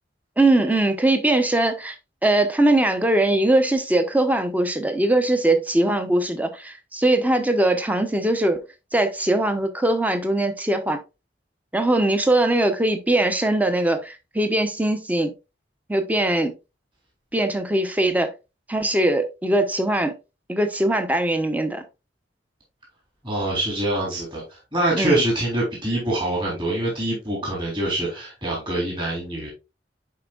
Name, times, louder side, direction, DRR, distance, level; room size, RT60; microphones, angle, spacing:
voice 1, 0.4-2.0 2.2-8.6 8.9-11.0 11.7-15.3 15.9-16.5 17.3-18.3 18.7-20.1 20.5-21.8 24.9-25.2, right 1 dB, 10° right, 0.8 m, -21 dB
voice 2, 23.2-29.5, right 1 dB, 30° right, 3.5 m, -25 dB
10.5 x 4.4 x 2.4 m
head